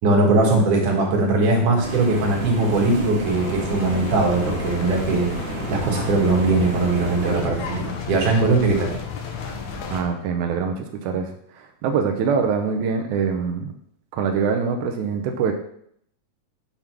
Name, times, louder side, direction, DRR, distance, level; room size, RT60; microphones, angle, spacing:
voice 1, 0.0-5.3 5.7-8.9, right 2 dB, 65° right, -1 dB, 2.8 m, -20 dB
sound 1, 1.8-7.4, right 1 dB, 40° right, 1.7 m, -31 dB
sound 2, 3.2-10.0, left 4 dB, 70° left, 1.9 m, -33 dB
voice 2, 9.9-13.7 14.1-15.5, right 6 dB, 80° right, 4 dB, 1.8 m, -24 dB
6.9 x 3.6 x 5.9 m, 0.68 s
omnidirectional pair, 4.1 m